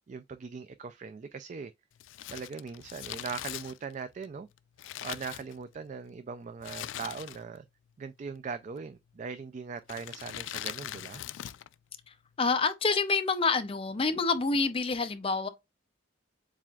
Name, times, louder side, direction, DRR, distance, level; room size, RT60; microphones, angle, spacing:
voice 1, 0.1-1.7 2.3-4.5 5.0-7.7 8.0-11.2, right 5 dB, 40° right, 0.3 m, -40 dB
Crumpling crinkling, 2.0-6.0 6.6-7.6 7.9-8.0 8.8-9.2 9.8-11.7 12.0-12.1, left 12 dB, 90° left, 0.3 m, -41 dB
voice 2, 12.1-15.5, left 4 dB, 30° left, 0.5 m, -28 dB
7.3 x 2.5 x 2.3 m
head